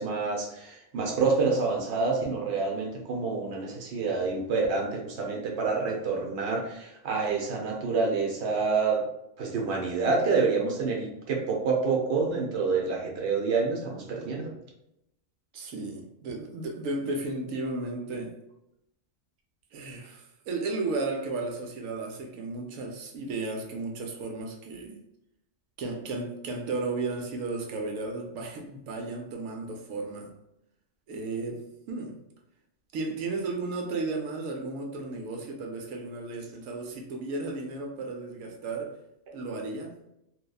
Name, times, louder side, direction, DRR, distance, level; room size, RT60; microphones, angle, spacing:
voice 1, 0.0-9.0 9.4-14.5, right 4 dB, 65° right, 0.9 m, -27 dB
voice 2, 15.5-18.3 19.7-25.0 25.8-30.3 31.1-32.2 32.9-39.0 39.3-40.0, right 3 dB, 90° right, 1.0 m, -34 dB
2.9 x 2.2 x 2.2 m
omnidirectional pair, 1.3 m